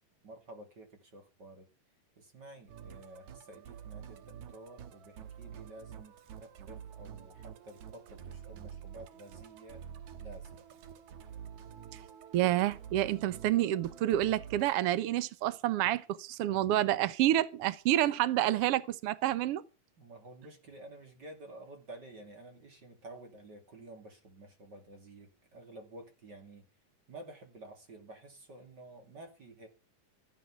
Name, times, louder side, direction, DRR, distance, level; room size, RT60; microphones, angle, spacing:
voice 1, 0.2-1.7 2.2-6.2 6.4-9.8 10.1-10.6 20.0-26.7 27.1-29.7, right 2 dB, 35° right, 2.7 m, -51 dB
Musical instrument, 2.7-14.6, right 8 dB, 65° right, 2.4 m, -48 dB
voice 2, 12.3-19.6, right 13 dB, 90° right, 1.3 m, -28 dB
17.0 x 9.0 x 6.0 m
omnidirectional pair, 3.8 m